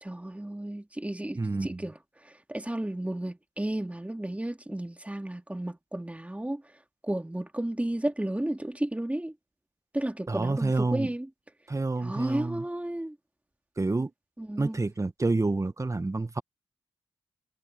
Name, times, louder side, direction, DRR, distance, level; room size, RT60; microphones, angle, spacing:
voice 1, 0.0-2.0 2.2-6.6 7.0-9.3 9.9-11.3 12.0-13.2 14.4-14.9, right 1 dB, 10° right, 2.7 m, -33 dB
voice 2, 1.3-1.8 10.3-11.1 11.7-12.6 13.8-14.1 14.6-16.4, right 3 dB, 30° right, 1.4 m, -28 dB
supercardioid pair, 45°, 11 cm